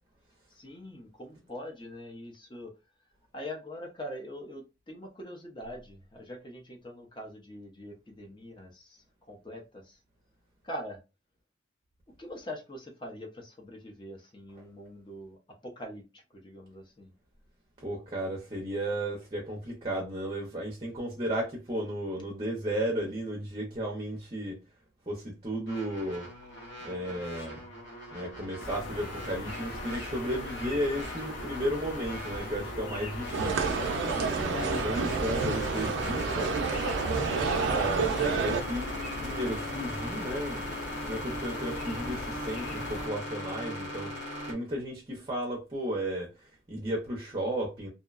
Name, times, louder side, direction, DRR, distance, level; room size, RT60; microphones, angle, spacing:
voice 1, 0.5-2.7 3.3-10.0 10.6-11.0 12.2-17.1, equal, 25° left, 0.6 m, -43 dB
voice 2, 17.8-24.6 25.1-26.3 26.8-27.7 28.1-36.5 37.6-40.7 41.1-47.9, equal, 25° right, 0.5 m, -34 dB
sound 1, 25.7-44.5, equal, 65° left, 1.0 m, -39 dB
sound 2, 28.6-43.1, left 2 dB, 85° left, 0.7 m, -40 dB
sound 3, 33.3-38.6, right 5 dB, 80° right, 0.4 m, -29 dB
2.6 x 2.1 x 2.3 m
head